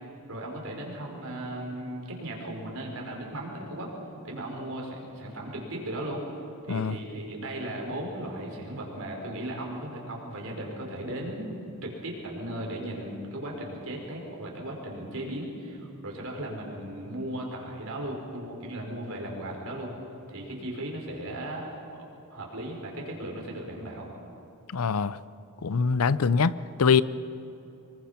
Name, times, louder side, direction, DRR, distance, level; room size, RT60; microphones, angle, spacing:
voice 1, 0.3-3.9 4.2-6.2 6.6-11.5 11.8-19.9 20.3-22.0 22.3-24.1, right 1 dB, 65° right, 5.4 m, -36 dB
voice 2, 24.7-25.2 25.6-26.5 26.8-27.0, left 5 dB, 70° left, 0.6 m, -23 dB
25.0 x 23.0 x 5.9 m
head